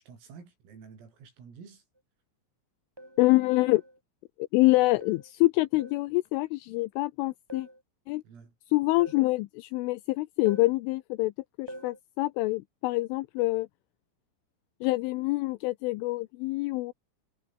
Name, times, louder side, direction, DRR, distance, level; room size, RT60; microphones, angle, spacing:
voice 1, 0.0-1.9 8.2-8.5, right 6 dB, 90° right, 9.4 m, -50 dB
sound 1, 2.0-2.1 3.0-3.3 3.7-4.0 5.0-5.3 5.8-6.1 7.5-7.8 9.0-9.3 10.4-10.8 11.7-12.0, right 1 dB, 5° right, 4.6 m, -45 dB
voice 2, 3.2-3.8 4.4-7.7 8.1-8.2 8.7-11.3 11.6-13.7 14.8-16.9, left 21 dB, 80° left, 3.1 m, -26 dB
omnidirectional pair, 5.9 m